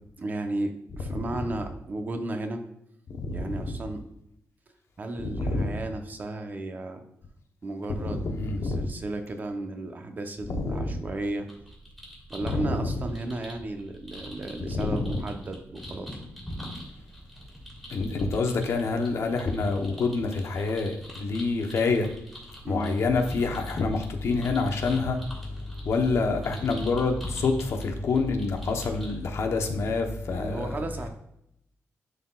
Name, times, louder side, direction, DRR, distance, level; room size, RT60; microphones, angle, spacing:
voice 1, 0.2-2.6 3.3-4.0 5.0-7.0 7.6-8.2 8.6-11.5 12.3-16.2 22.6-23.0 30.3-31.1, right 2 dB, 35° right, 6 dB, 0.8 m, -34 dB
voice 2, 5.4-5.7 8.0-8.9 10.5-10.8 12.5-12.9 14.7-15.1 17.9-20.9 21.2-22.0 22.7-25.2 25.9-30.6, left 3 dB, 65° left, 4 dB, 0.9 m, -27 dB
sound 1, 11.5-29.1, equal, 5° left, 2.4 m, -44 dB
11.0 x 4.1 x 2.3 m, 0.77 s
wide cardioid pair, 135°, 5 cm